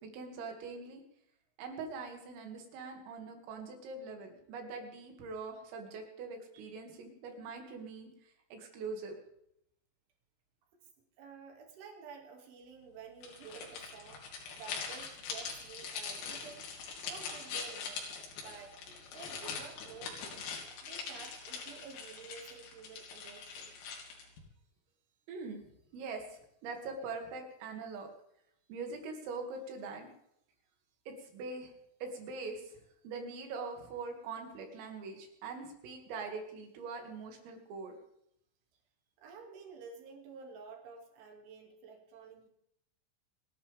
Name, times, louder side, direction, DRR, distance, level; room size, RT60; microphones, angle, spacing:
voice 1, 0.0-1.0 1.6-8.1 8.5-9.2 25.3-25.6 25.9-28.1 28.7-30.1 31.1-31.7 32.0-32.8 33.0-38.0, right 4 dB, 90° right, 3 dB, 5.1 m, -43 dB
voice 2, 11.2-16.7 17.0-18.1 18.4-18.8 19.1-20.4 20.8-23.8 39.2-42.5, right 5 dB, 70° right, 2 dB, 4.8 m, -51 dB
sound 1, 13.2-24.4, left 5 dB, 80° left, 5.4 m, -43 dB
30.0 x 11.0 x 3.6 m, 0.76 s
omnidirectional pair, 5.8 m